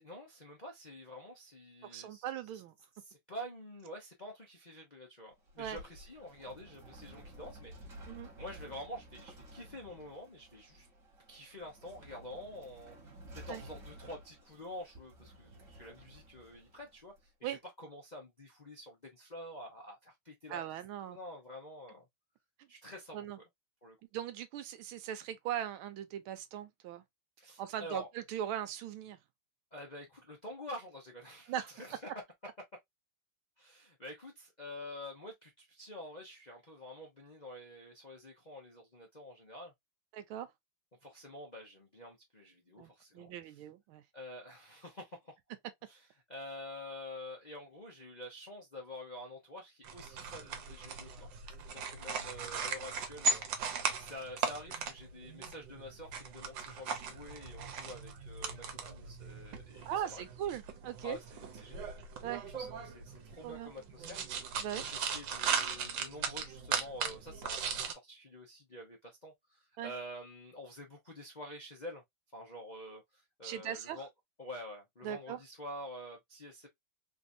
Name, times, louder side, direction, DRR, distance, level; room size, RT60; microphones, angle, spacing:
voice 1, 0.0-2.2 2.5-2.6 2.9-8.0 8.4-10.9 11.3-12.9 13.3-20.6 21.1-22.0 22.7-23.2 23.8-24.0 27.4-28.1 29.7-32.1 33.6-39.7 41.0-43.6 44.1-45.4 45.9-51.3 51.7-60.2 61.0-61.9 62.5-64.2 64.7-72.0 72.3-74.1 74.4-76.7, left 1 dB, 50° left, 0.5 m, -48 dB
voice 2, 1.9-2.7 5.6-5.8 8.1-8.3 13.5-13.6 17.4-17.6 20.5-21.2 23.1-23.4 24.1-27.0 27.6-29.2 31.5-31.7 40.1-40.5 42.8-44.0 59.8-61.2 62.2-62.4 63.4-63.7 64.6-64.8 69.8-69.9 73.4-74.0 75.0-75.4, right 10 dB, 90° right, 1.5 m, -39 dB
sound 1, 5.3-17.2, right 1 dB, 40° right, 1.6 m, -53 dB
sound 2, 49.8-67.9, right 5 dB, 70° right, 1.4 m, -38 dB
3.8 x 2.7 x 2.6 m
omnidirectional pair, 2.3 m